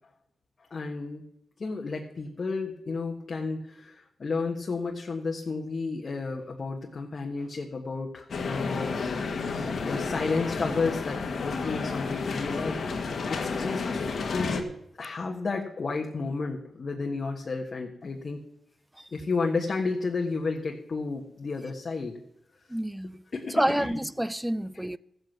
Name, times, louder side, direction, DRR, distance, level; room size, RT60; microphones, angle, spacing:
voice 1, 0.7-1.2 1.6-9.0 9.7-18.4 19.1-22.2 23.3-23.9, left 4 dB, 50° left, 1.4 m, -32 dB
sound 1, 8.3-14.6, left 4 dB, 70° left, 1.7 m, -31 dB
voice 2, 22.7-23.2 23.5-25.0, right 1 dB, 10° right, 0.4 m, -28 dB
14.5 x 8.0 x 6.1 m
cardioid pair, 55°, 0 cm